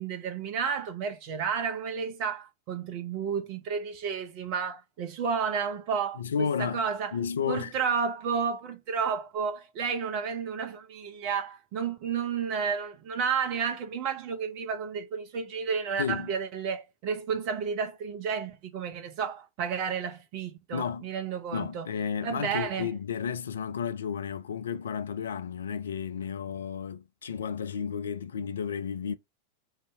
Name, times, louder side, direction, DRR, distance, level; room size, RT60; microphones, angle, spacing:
voice 1, 0.0-7.2 7.5-21.9 22.2-22.9, right 6 dB, 45° right, 0.7 m, -31 dB
voice 2, 6.2-6.8 7.1-7.7 16.0-16.3 20.7-21.1 21.5-29.1, left 7 dB, 65° left, 0.4 m, -32 dB
2.8 x 2.6 x 3.2 m
figure-of-eight pair, 90°, 0 cm